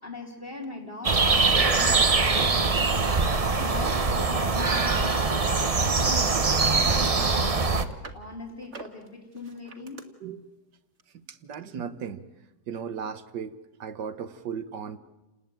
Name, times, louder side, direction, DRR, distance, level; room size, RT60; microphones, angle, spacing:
voice 1, 0.0-3.0 3.5-7.8 8.1-10.0, left 3 dB, 30° left, -3 dB, 2.8 m, -40 dB
sound 1, 0.6-0.7 1.2-2.7 3.1-3.5 3.8-5.9 6.4-7.0 7.3-8.2 8.6-10.0 11.0-11.1 11.5-11.6, right 4 dB, 40° right, 2.1 m, -44 dB
sound 2, 1.0-7.9, right 4 dB, 25° right, 0.9 m, -23 dB
voice 2, 11.1-12.2 12.7-15.0, right 7 dB, 75° right, 11 dB, 1.8 m, -36 dB
29.5 x 20.0 x 9.1 m, 1.0 s
omnidirectional pair, 1.9 m